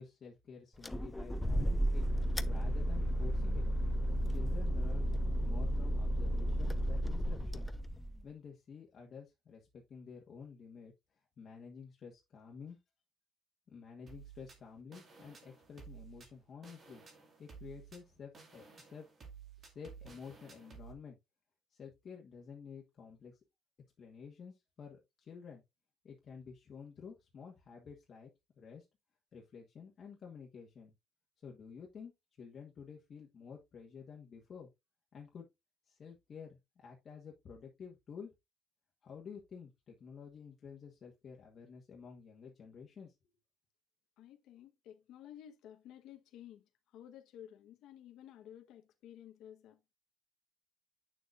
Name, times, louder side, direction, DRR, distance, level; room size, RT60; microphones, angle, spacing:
voice 1, 0.0-2.1 2.4-3.6 4.3-5.1 5.4-7.7 8.2-12.8 13.7-17.0 17.4-19.1 19.6-21.2 21.7-23.4 24.0-25.6 26.0-28.3 28.6-28.8 29.3-30.9 31.4-32.1 32.4-34.7 35.1-35.5 35.8-38.3 39.0-43.1, left 6 dB, 35° left, 1.4 m, -51 dB
sound 1, 0.8-8.2, equal, 5° left, 0.4 m, -33 dB
sound 2, 14.1-20.9, right 6 dB, 30° right, 2.2 m, -54 dB
voice 2, 44.2-46.6 46.9-49.8, left 10 dB, 70° left, 1.1 m, -53 dB
8.9 x 6.6 x 2.5 m
cardioid pair, 175°, 0 cm